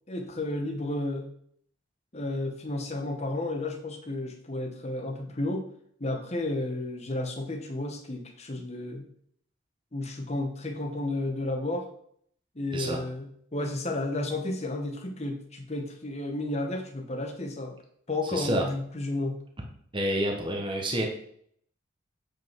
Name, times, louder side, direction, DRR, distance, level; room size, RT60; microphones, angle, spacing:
voice 1, 0.1-1.3 2.1-5.7 6.0-9.1 9.9-11.9 12.5-17.7 18.1-19.4, left 2 dB, 30° left, 4 dB, 1.1 m, -32 dB
voice 2, 18.3-18.6 19.9-21.1, right 1 dB, 25° right, 1 dB, 1.1 m, -28 dB
7.7 x 5.2 x 4.6 m, 0.65 s
head